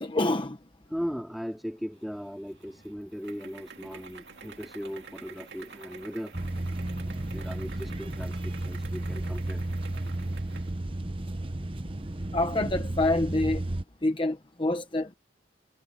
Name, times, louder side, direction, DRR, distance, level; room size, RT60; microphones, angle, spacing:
voice 1, 0.0-0.6 12.3-13.6 14.0-15.1, left 2 dB, 25° left, 0.9 m, -27 dB
voice 2, 0.9-6.4 7.1-9.7, equal, ahead, 2.7 m, -38 dB
sound 1, 2.0-10.8, right 4 dB, 60° right, 2.5 m, -49 dB
sound 2, 6.3-13.8, right 1 dB, 30° right, 1.0 m, -33 dB
head